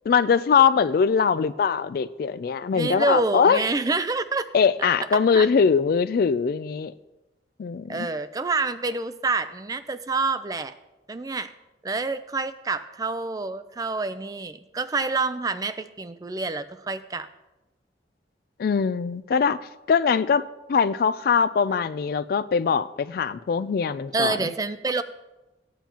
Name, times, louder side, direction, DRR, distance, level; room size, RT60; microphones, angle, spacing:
voice 1, 0.1-3.6 4.5-6.9 7.6-8.1 18.6-24.5, left 6 dB, 55° left, 0.3 m, -22 dB
voice 2, 2.7-4.5 4.8-4.9 5.3-5.5 7.9-10.8 11.1-11.5 11.8-17.3 24.1-25.0, right 3 dB, 20° right, 0.4 m, -27 dB
15.0 x 9.1 x 2.9 m
head